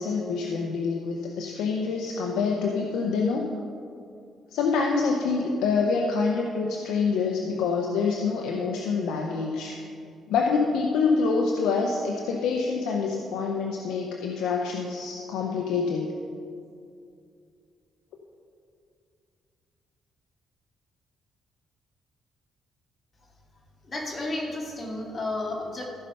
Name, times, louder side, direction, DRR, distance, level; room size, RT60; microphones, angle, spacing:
voice 1, 0.0-3.5 4.5-9.8 10.3-16.1, left 4 dB, 90° left, 1 dB, 0.7 m, -26 dB
voice 2, 23.9-25.9, left 2 dB, 35° left, -1 dB, 2.2 m, -32 dB
14.5 x 5.5 x 5.6 m, 2.4 s
cardioid pair, 90°, 0 cm